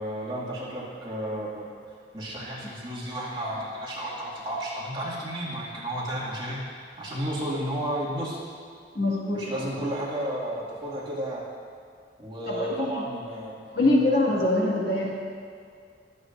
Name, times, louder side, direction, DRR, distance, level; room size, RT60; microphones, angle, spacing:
voice 1, 0.0-1.7 2.1-6.6 7.0-8.4 9.3-11.5 12.2-13.9, right 1 dB, 25° right, -7 dB, 2.1 m, -32 dB
voice 2, 9.0-9.6 12.5-12.9 13.7-15.2, left 2 dB, 55° left, -4 dB, 1.9 m, -24 dB
21.0 x 7.5 x 2.6 m, 2.2 s
head